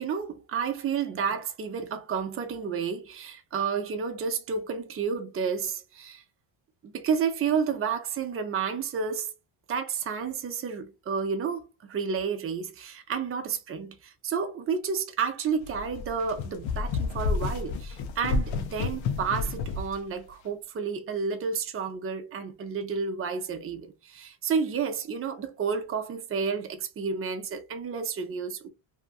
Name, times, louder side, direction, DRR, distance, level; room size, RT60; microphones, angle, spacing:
voice 1, 0.0-6.2 6.8-9.3 9.7-28.7, right 6 dB, 30° right, 0.6 m, -31 dB
sound 1, 15.6-20.0, left 4 dB, 75° left, 0.7 m, -30 dB
2.8 x 2.4 x 2.4 m
cardioid pair, 125°, 48 cm